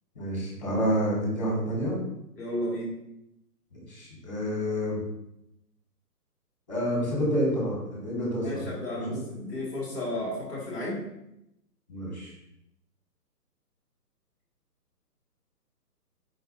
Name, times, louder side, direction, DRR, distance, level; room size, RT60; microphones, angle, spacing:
voice 1, 0.1-2.0 3.7-5.0 6.7-8.7 8.9-9.2 11.9-12.3, equal, 25° left, -2 dB, 1.3 m, -29 dB
voice 2, 2.4-3.0 8.4-11.0, left 1 dB, 10° right, -9 dB, 1.2 m, -33 dB
4.6 x 3.9 x 2.7 m, 0.83 s
hypercardioid pair, 180°, 49 cm